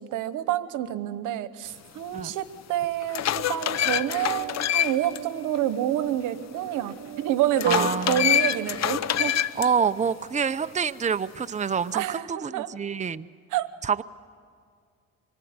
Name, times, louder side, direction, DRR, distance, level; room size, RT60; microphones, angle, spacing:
voice 1, 0.0-9.4 11.9-12.7 13.5-13.7, right 12 dB, 90° right, 14 dB, 1.1 m, -28 dB
sound 1, 2.2-2.3 2.8-5.2 5.6-5.7 7.6-9.7, left 10 dB, 60° left, 0.9 m, -25 dB
sound 2, 3.8-9.2, right 12 dB, 55° right, 1.2 m, -42 dB
voice 2, 7.7-8.3 9.6-13.3 13.8-14.0, right 6 dB, 25° right, 12 dB, 0.7 m, -27 dB
25.5 x 24.0 x 9.5 m, 2.2 s
cardioid pair, 90°, 30 cm